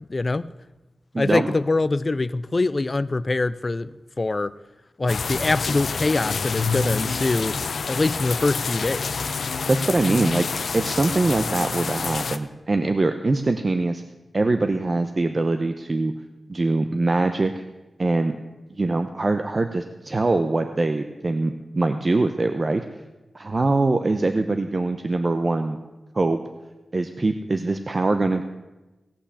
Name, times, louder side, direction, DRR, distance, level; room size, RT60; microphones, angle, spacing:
voice 1, 0.1-0.5 1.2-3.9 4.2-4.5 5.0-7.6 7.9-9.2, left 3 dB, 35° left, 14 dB, 0.4 m, -24 dB
voice 2, 1.1-1.5 9.7-14.0 14.3-16.1 16.5-17.6 18.0-18.4 18.7-22.8 23.3-25.8 26.1-26.4 26.9-28.4, right 2 dB, 40° right, 8 dB, 0.8 m, -23 dB
sound 1, 5.1-12.4, left 5 dB, 75° left, 0.7 m, -27 dB
17.5 x 5.9 x 8.3 m, 1.1 s
wide cardioid pair, 80°, 0 cm